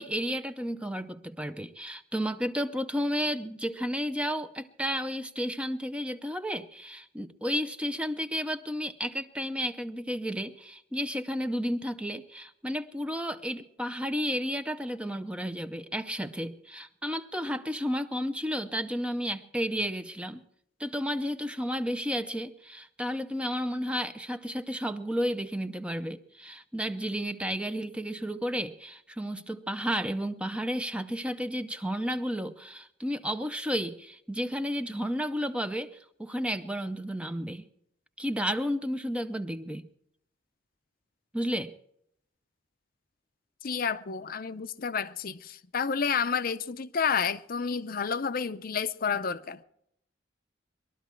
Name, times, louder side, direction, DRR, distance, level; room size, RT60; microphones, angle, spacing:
voice 1, 0.0-20.4 20.8-37.6 38.2-39.9 41.3-41.7, equal, 5° right, 0.6 m, -32 dB
voice 2, 43.6-49.6, left 6 dB, 50° left, 0.6 m, -30 dB
21.0 x 12.5 x 4.5 m
head